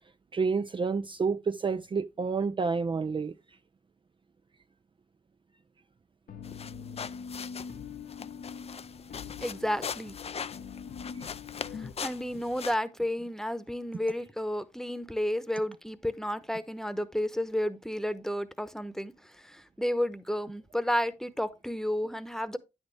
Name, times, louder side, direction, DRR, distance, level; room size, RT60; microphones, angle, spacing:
voice 1, 0.3-3.3, right 5 dB, 35° right, 0.4 m, -29 dB
sound 1, 6.3-11.9, left 6 dB, 75° left, 0.8 m, -43 dB
sound 2, 6.4-12.8, left 6 dB, 45° left, 0.4 m, -41 dB
voice 2, 9.4-10.2 11.7-22.6, equal, 5° left, 1.0 m, -32 dB
9.4 x 6.3 x 3.2 m
supercardioid pair, 40°, 14 cm